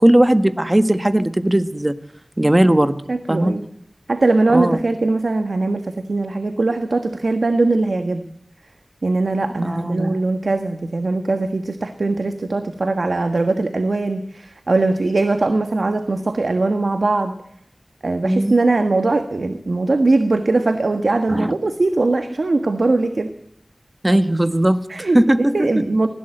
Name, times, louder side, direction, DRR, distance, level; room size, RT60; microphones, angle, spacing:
voice 1, 0.0-1.9 2.4-3.0 3.3-3.5 4.5-4.8 9.6-10.2 18.2-18.6 21.3-21.5 24.0-25.8, right 1 dB, 30° right, 10 dB, 1.5 m, -17 dB
voice 2, 3.1-3.6 4.1-8.2 9.0-17.3 18.0-23.3 24.9-25.2 25.5-26.1, right 2 dB, 85° right, 8 dB, 1.4 m, -20 dB
20.0 x 16.0 x 7.9 m, 0.69 s
wide cardioid pair, 45°, 0 cm